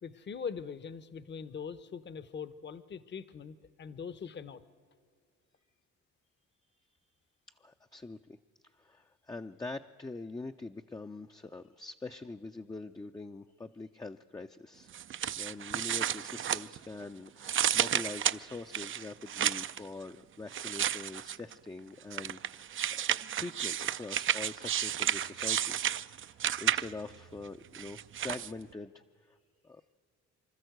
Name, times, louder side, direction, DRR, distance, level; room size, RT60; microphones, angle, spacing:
voice 1, 0.0-4.6, left 6 dB, 35° left, 15 dB, 0.9 m, -42 dB
voice 2, 7.6-8.4 8.7-14.9 15.4-25.8 26.3-29.4 29.6-29.8, left 3 dB, 15° left, 5 dB, 0.5 m, -44 dB
sound 1, 14.9-17.0 17.4-19.8 20.5-21.5 22.1-27.1 27.7-28.5, right 10 dB, 45° right, 0.5 m, -32 dB
25.5 x 13.0 x 7.9 m, 2.2 s
cardioid pair, 90°, 30 cm